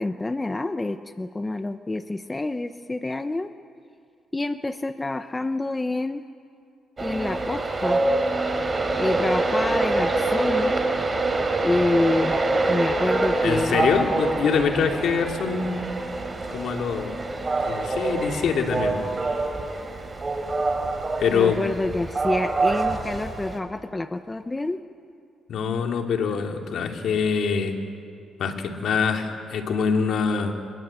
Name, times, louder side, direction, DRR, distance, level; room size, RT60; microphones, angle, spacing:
voice 1, 0.0-3.5 4.3-6.2 7.0-8.0 9.0-10.8 11.6-12.4 12.7-13.9 21.3-24.8, left 2 dB, 20° left, 10 dB, 0.8 m, -27 dB
Train, 7.0-23.6, right 2 dB, 30° right, 3.5 m, -25 dB
voice 2, 13.4-15.9 16.5-17.2 17.7-19.0 21.2-21.6 25.5-27.7 28.4-30.5, left 6 dB, 70° left, 3 dB, 2.8 m, -24 dB
27.5 x 20.0 x 8.9 m, 2.5 s
cardioid pair, 90°, 0 cm